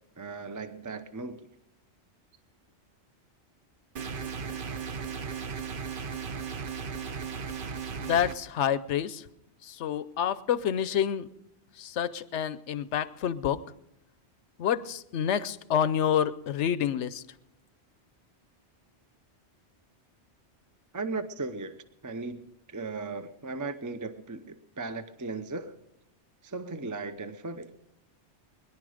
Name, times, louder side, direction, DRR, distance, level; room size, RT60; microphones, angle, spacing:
voice 1, 0.2-1.4 20.9-21.8 22.0-25.8 26.4-27.7, right 3 dB, 20° right, 0.6 m, -37 dB
sound 1, 4.0-8.4, right 6 dB, 50° right, 1.0 m, -36 dB
voice 2, 8.0-9.2 9.7-11.3 11.8-13.6 14.6-17.2, left 9 dB, 80° left, 1.0 m, -28 dB
22.0 x 11.0 x 5.0 m
omnidirectional pair, 1.2 m